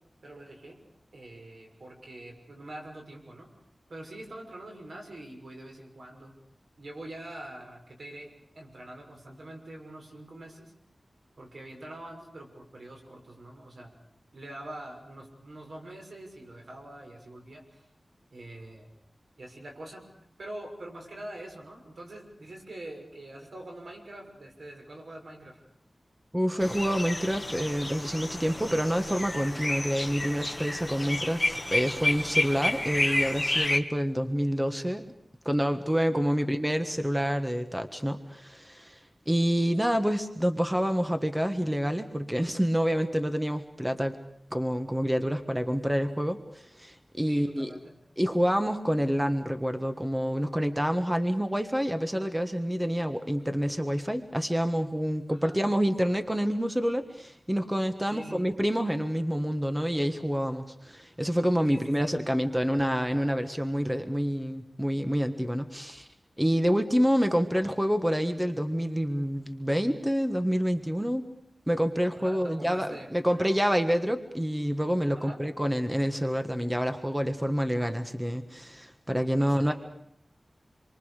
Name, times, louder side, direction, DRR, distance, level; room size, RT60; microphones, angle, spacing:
voice 1, 0.2-0.8 1.1-3.5 3.9-6.3 6.8-10.7 11.4-13.9 14.3-17.9 18.3-18.9 19.4-20.1 20.4-25.6 36.3-36.5 47.3-48.0 55.4-55.6 58.1-58.5 61.7-62.2 72.2-73.5 75.1-75.4 79.4-79.7, right 1 dB, 75° right, 2 dB, 6.4 m, -44 dB
voice 2, 26.3-35.1 35.4-39.0 39.3-44.2 44.5-47.7 48.2-66.1 66.4-71.3 71.7-79.7, equal, 10° right, 7 dB, 1.5 m, -27 dB
sound 1, 26.6-33.8, left 1 dB, 15° left, 1.9 m, -30 dB
28.0 x 24.0 x 6.6 m, 0.70 s
wide cardioid pair, 90°, 0 cm